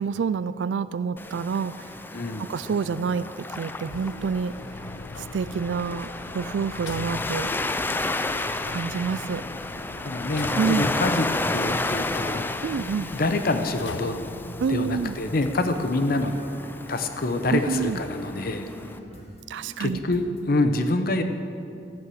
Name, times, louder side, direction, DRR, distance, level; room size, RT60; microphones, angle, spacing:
voice 1, 0.0-1.7 2.4-3.3 3.6-4.5 5.3-7.5 8.7-9.4 10.6-10.9 12.6-13.1 14.6-15.2 17.5-18.0 19.5-20.0, right 6 dB, 90° right, 14 dB, 0.4 m, -27 dB
Waves surf, 1.2-19.0, left 2 dB, 10° left, 0.4 m, -32 dB
voice 2, 2.1-2.5 10.0-12.4 12.7-14.2 14.7-16.3 16.9-18.7 19.8-21.2, left 2 dB, 55° left, 8 dB, 0.8 m, -26 dB
sound 1, 3.9-15.5, left 4 dB, 90° left, 0.5 m, -40 dB
sound 2, 16.2-20.4, left 1 dB, 35° left, 1.8 m, -46 dB
14.5 x 8.5 x 7.7 m, 2.6 s
head